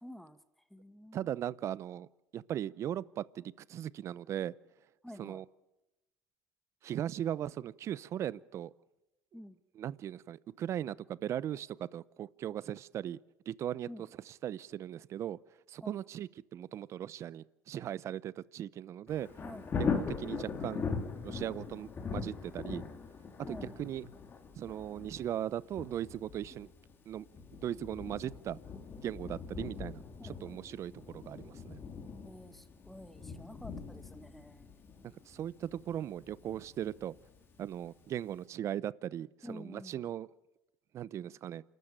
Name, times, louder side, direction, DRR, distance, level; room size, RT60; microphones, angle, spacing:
voice 1, 0.0-0.4 0.7-1.3 5.0-5.4 9.3-9.6 13.9-14.1 15.8-16.0 19.4-19.7 23.5-23.8 30.3-30.6 32.2-34.7 39.4-40.0, left 1 dB, 5° left, 12 dB, 1.4 m, -49 dB
voice 2, 1.1-2.1 2.3-4.5 5.2-5.5 6.8-8.7 9.7-13.2 13.5-15.4 15.7-19.3 19.8-20.8 21.2-22.8 23.5-24.1 24.6-26.7 27.1-27.3 27.6-28.6 29.0-31.8 35.3-37.2 37.6-40.3 40.9-41.6, right 11 dB, 45° right, 20 dB, 0.7 m, -38 dB
Thunder, 19.1-37.8 38.3-38.4, left 5 dB, 30° left, 3.1 m, -41 dB
28.5 x 13.5 x 8.9 m, 0.96 s
supercardioid pair, 110°, 7 cm